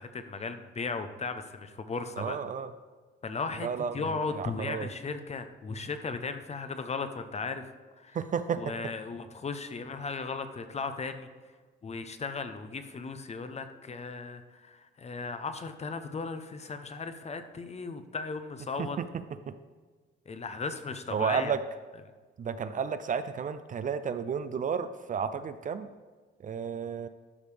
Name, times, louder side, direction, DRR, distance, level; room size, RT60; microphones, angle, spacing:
voice 1, 0.0-2.4 3.2-3.7 3.9-7.7 8.0-8.2 8.6-11.3 11.8-19.0 20.3-21.5, left 4 dB, 35° left, 9 dB, 0.7 m, -36 dB
voice 2, 2.2-2.7 3.6-4.9 8.1-8.7 18.8-19.6 21.1-21.6 22.4-25.9 26.4-27.1, right 6 dB, 40° right, 11 dB, 0.4 m, -32 dB
12.0 x 5.2 x 3.4 m, 1.4 s
cardioid pair, 90°, 20 cm